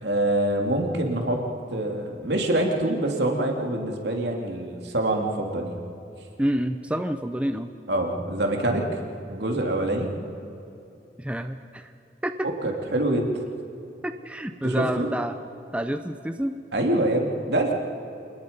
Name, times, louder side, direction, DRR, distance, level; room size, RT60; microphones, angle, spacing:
voice 1, 0.0-1.4 1.7-5.8 7.9-8.9 9.3-10.1 12.6-13.3 14.6-15.1 16.7-17.7, right 1 dB, 70° right, 1 dB, 3.0 m, -25 dB
voice 2, 6.4-7.7 11.2-11.9 12.2-12.5 14.0-15.4 15.7-16.6, right 1 dB, 5° right, 8 dB, 0.6 m, -28 dB
27.0 x 20.5 x 5.4 m, 2.8 s
head